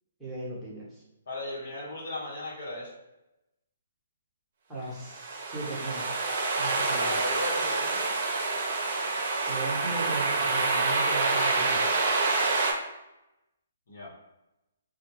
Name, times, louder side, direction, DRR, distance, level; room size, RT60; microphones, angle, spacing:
voice 1, 0.2-1.0 4.7-6.0 6.6-7.2 9.5-11.8, right 3 dB, 10° right, -8 dB, 0.9 m, -37 dB
voice 2, 1.3-2.9 7.0-8.1 13.9-14.1, left 2 dB, 65° left, -4 dB, 1.0 m, -36 dB
sound 1, 5.0-12.7, right 3 dB, 50° right, 0.6 m, -27 dB
2.2 x 2.2 x 3.1 m, 0.92 s
hypercardioid pair, 140°, 0 cm